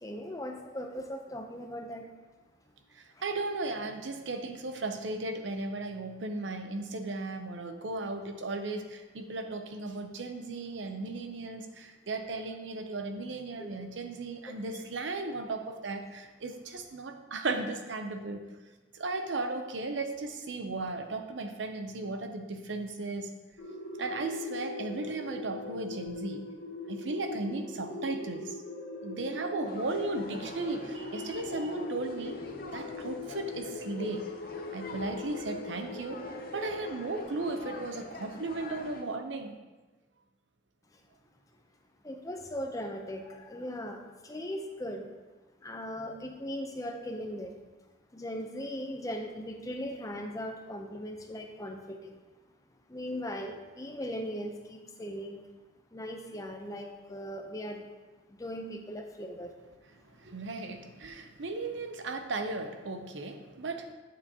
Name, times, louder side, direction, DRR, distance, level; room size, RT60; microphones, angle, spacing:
voice 1, 0.0-2.1 13.6-13.7 14.5-14.6 42.0-45.1 45.6-47.6 48.1-52.2 52.9-55.4 55.9-57.9 58.3-59.5, equal, 20° left, 4 dB, 0.6 m, -39 dB
voice 2, 3.2-18.4 18.9-23.3 24.0-26.5 26.9-28.6 29.0-32.4 32.7-34.3 34.7-36.2 36.5-39.6 60.2-63.9, right 2 dB, 90° right, 6 dB, 0.7 m, -36 dB
sound 1, 23.6-37.2, left 2 dB, 85° left, 1.0 m, -41 dB
sound 2, 29.7-39.0, left 2 dB, 55° left, 0.7 m, -45 dB
8.2 x 6.8 x 2.9 m, 1.2 s
head